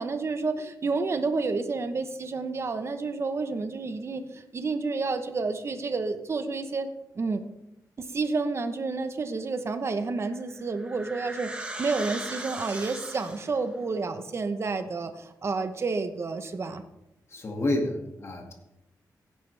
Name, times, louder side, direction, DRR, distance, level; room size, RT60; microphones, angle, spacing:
voice 1, 0.0-6.9 7.2-7.4 8.1-16.8, right 4 dB, 40° right, 8 dB, 1.0 m, -30 dB
sound 1, 10.2-13.6, right 2 dB, 15° right, 1.6 m, -38 dB
voice 2, 17.3-18.5, left 1 dB, 40° left, 2 dB, 2.2 m, -29 dB
16.5 x 10.0 x 3.5 m, 0.89 s
wide cardioid pair, 145°, 7 cm